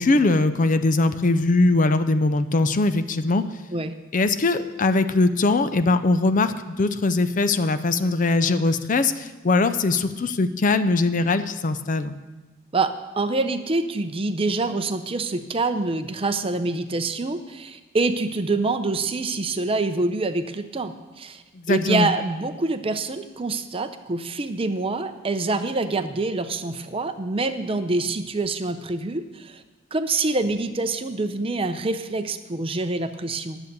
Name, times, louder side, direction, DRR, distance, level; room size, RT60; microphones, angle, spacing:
voice 1, 0.0-3.4 4.1-12.2 21.7-22.1, left 3 dB, 40° left, 11 dB, 0.5 m, -21 dB
voice 2, 12.7-29.6 29.9-33.6, right 3 dB, 25° right, 9 dB, 0.6 m, -26 dB
11.0 x 8.0 x 6.6 m, 1.2 s
head